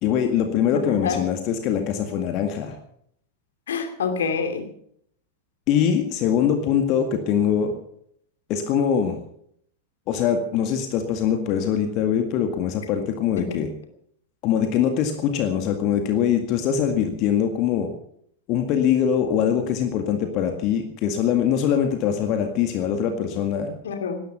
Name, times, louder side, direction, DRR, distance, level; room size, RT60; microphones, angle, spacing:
voice 1, 0.0-2.8 5.7-7.7 8.5-9.2 10.1-13.7 14.4-17.9 18.5-23.7, left 8 dB, 40° left, 5 dB, 2.0 m, -23 dB
voice 2, 0.7-1.2 3.7-4.7 13.4-13.5 23.8-24.2, left 5 dB, 65° left, 6 dB, 2.6 m, -27 dB
18.0 x 13.0 x 5.7 m, 0.69 s
figure-of-eight pair, 90°, 0 cm